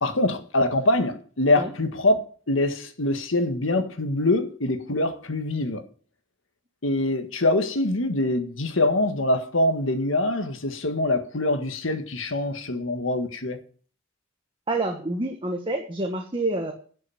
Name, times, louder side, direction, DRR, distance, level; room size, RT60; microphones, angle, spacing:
voice 1, 0.0-5.8 6.8-13.6, left 2 dB, 85° left, 1.6 m, -24 dB
voice 2, 14.7-16.7, right 2 dB, 25° right, 1.4 m, -27 dB
11.5 x 6.3 x 8.9 m
head